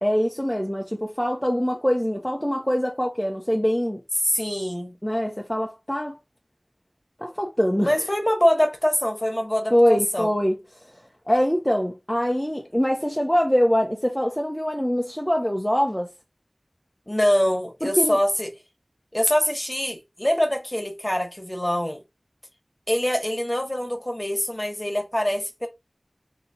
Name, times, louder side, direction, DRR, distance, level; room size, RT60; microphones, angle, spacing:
voice 1, 0.0-4.0 5.0-6.2 7.2-8.0 9.7-10.6 11.3-16.1 17.8-18.2, equal, 10° left, 0.7 m, -23 dB
voice 2, 4.2-4.9 7.8-10.3 17.1-18.5 19.1-22.0 22.9-25.7, equal, 25° left, 1.3 m, -24 dB
3.9 x 2.8 x 2.8 m
wide cardioid pair, 45°, 0 cm